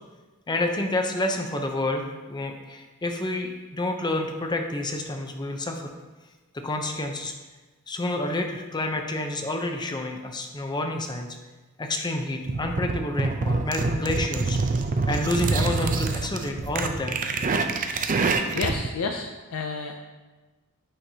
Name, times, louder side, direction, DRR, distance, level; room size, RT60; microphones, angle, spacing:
voice 1, 0.5-5.9 6.5-7.3 7.9-11.3 11.8-14.6 15.1-17.2, left 1 dB, 20° left, 4 dB, 0.6 m, -29 dB
sound 1, 12.5-18.9, right 3 dB, 35° right, 0.4 m, -26 dB
voice 2, 18.5-20.0, left 4 dB, 75° left, 3 dB, 0.5 m, -30 dB
8.6 x 5.2 x 2.8 m, 1.2 s
head